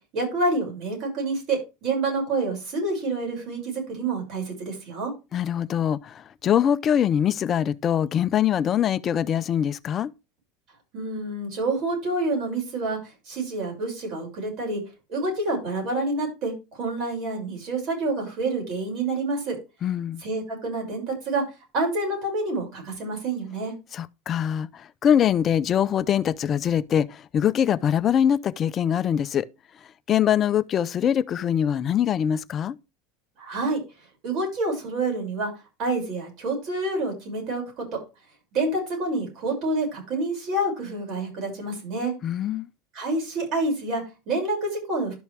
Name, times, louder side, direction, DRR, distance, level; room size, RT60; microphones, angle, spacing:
voice 1, 0.1-5.1 10.9-13.0 13.3-14.8 15.1-19.6 20.2-21.4 21.7-23.7 33.4-33.8 34.2-35.5 35.8-38.0 38.5-42.1 42.9-45.1, right 2 dB, 45° right, 6.6 m, -28 dB
voice 2, 5.3-10.1 19.8-20.2 23.9-29.5 30.1-32.8 42.2-42.7, left 9 dB, 30° left, 0.5 m, -23 dB
12.0 x 6.2 x 3.4 m
supercardioid pair, 145°, 0 cm